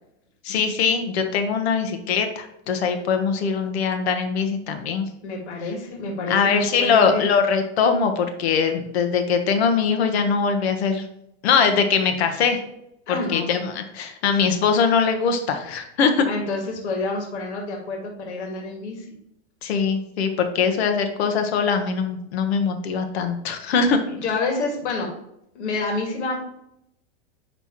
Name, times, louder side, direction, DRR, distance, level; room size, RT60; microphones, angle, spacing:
voice 1, 0.4-5.1 6.3-11.0 11.4-12.6 13.1-16.3 19.6-24.0, left 6 dB, 65° left, 6 dB, 1.2 m, -22 dB
voice 2, 5.2-7.3 13.1-13.5 16.3-19.1 24.1-25.1 25.5-26.4, left 3 dB, 85° left, 1 dB, 2.1 m, -28 dB
10.0 x 3.4 x 3.0 m, 0.78 s
supercardioid pair, 160°, 33 cm